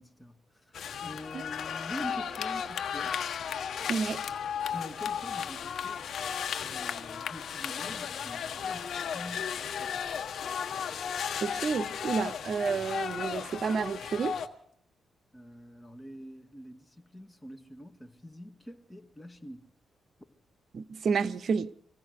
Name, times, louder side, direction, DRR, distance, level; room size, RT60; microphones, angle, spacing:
voice 1, 0.0-3.2 4.7-6.0 6.6-10.0 15.3-19.7, equal, 10° left, 1.9 m, -45 dB
sound 1, 0.7-14.5, left 7 dB, 70° left, 1.4 m, -35 dB
voice 2, 3.9-4.2 11.4-14.4 20.7-21.7, right 5 dB, 60° right, 0.8 m, -30 dB
25.5 x 16.0 x 6.6 m
cardioid pair, 75°, 0 cm